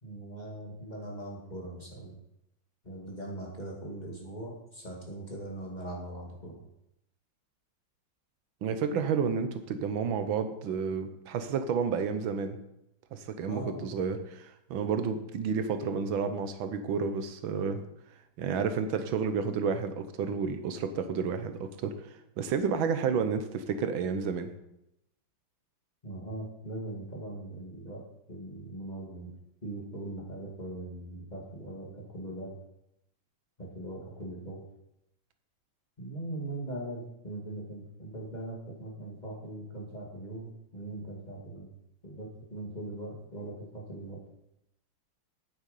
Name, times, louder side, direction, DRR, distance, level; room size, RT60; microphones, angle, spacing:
voice 1, 0.0-2.1 2.8-6.6 13.4-13.9 26.0-28.0 28.3-29.3 29.6-32.5 33.6-34.6 36.0-41.7 42.0-44.2, right 1 dB, 20° left, -3 dB, 2.3 m, -40 dB
voice 2, 8.6-12.6 13.1-17.8 18.4-24.5, right 6 dB, 80° right, 9 dB, 1.6 m, -31 dB
9.2 x 8.1 x 5.4 m, 0.82 s
omnidirectional pair, 2.1 m